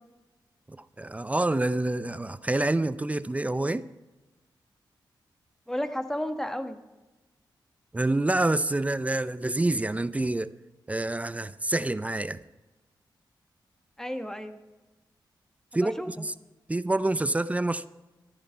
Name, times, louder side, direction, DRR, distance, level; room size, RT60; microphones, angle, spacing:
voice 1, 1.0-3.9 7.9-10.5 10.9-12.4 15.7-16.3 16.7-17.9, right 2 dB, 15° right, 0.5 m, -27 dB
voice 2, 5.7-6.8 14.0-14.6 15.8-16.3, equal, 5° left, 1.3 m, -33 dB
14.0 x 11.0 x 4.5 m
cardioid pair, 80°, 8 cm